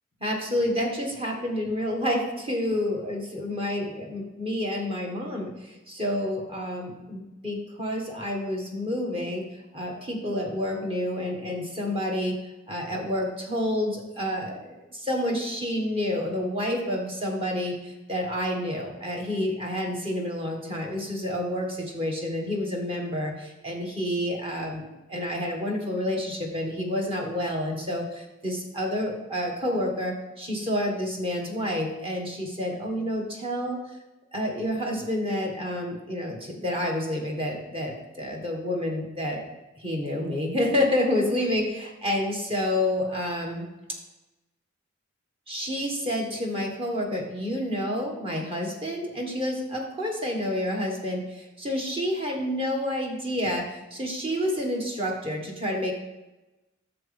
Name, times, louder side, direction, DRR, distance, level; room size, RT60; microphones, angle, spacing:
voice 1, 0.2-9.5 9.7-12.4 12.7-33.8 34.3-39.4 39.8-43.7 45.5-55.9, left 1 dB, 30° right, 0 dB, 1.8 m, -29 dB
11.0 x 7.4 x 3.5 m, 1.0 s
head